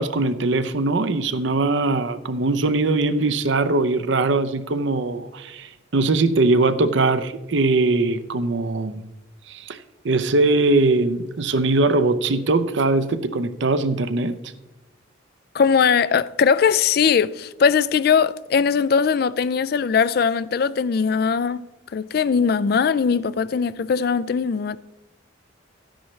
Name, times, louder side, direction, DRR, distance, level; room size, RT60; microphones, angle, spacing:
voice 1, 0.0-9.0 9.5-9.8 10.0-14.3, right 2 dB, 65° right, 0.6 m, -21 dB
voice 2, 15.5-21.7 21.9-24.8, left 6 dB, 50° left, 0.3 m, -20 dB
13.0 x 10.0 x 3.2 m
head